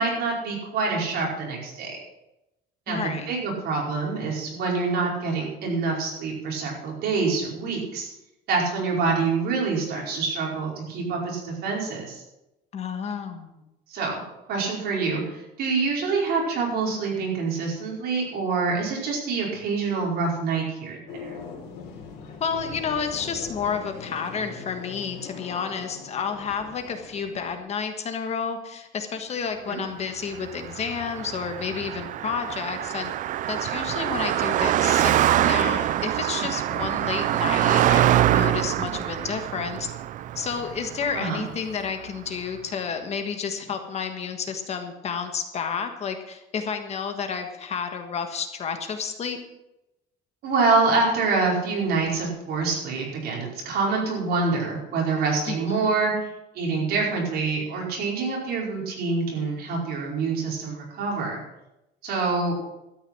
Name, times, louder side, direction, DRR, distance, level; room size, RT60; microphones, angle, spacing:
voice 1, 0.0-2.0 2.9-8.1 8.5-12.2 13.9-14.2 14.5-21.4 29.7-29.8 41.1-41.4 50.4-56.1 56.5-61.4 62.0-62.5, right 4 dB, 60° right, -2 dB, 5.1 m, -26 dB
voice 2, 2.9-3.3 12.7-13.6 22.4-33.1 33.5-39.9 40.3-49.4 55.5-55.9, left 6 dB, 35° left, 6 dB, 1.4 m, -31 dB
sound 1, 21.1-27.6, left 5 dB, 65° left, 3.5 m, -41 dB
Car passing by, 30.4-41.9, right 13 dB, 45° right, 0.4 m, -24 dB
13.0 x 9.4 x 6.1 m, 0.92 s
cardioid pair, 160°, 18 cm